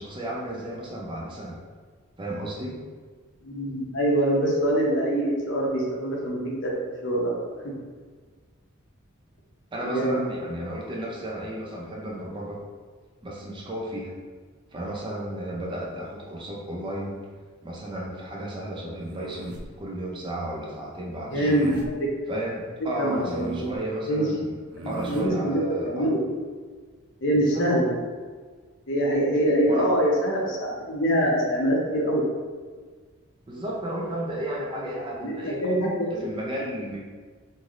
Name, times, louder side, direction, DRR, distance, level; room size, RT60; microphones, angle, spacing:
voice 1, 0.0-1.6 2.2-2.8 9.7-12.6 13.2-14.1 14.7-17.2 17.6-21.6 22.3-24.6 24.8-26.1 27.3-27.7 29.6-29.9 33.5-35.6 36.2-37.0, right 1 dB, 25° right, -3 dB, 0.4 m, -33 dB
voice 2, 3.4-7.3 9.8-10.2 21.3-21.9 23.0-23.7 24.1-24.3 24.8-26.2 27.2-27.9 28.9-32.2 35.2-36.2, right 1 dB, 60° left, -2 dB, 0.6 m, -24 dB
sound 1, 19.0-19.7 21.3-21.9 23.1-23.8 24.7-25.3, right 2 dB, 90° right, 0.4 m, -38 dB
3.2 x 2.6 x 2.4 m, 1.5 s
head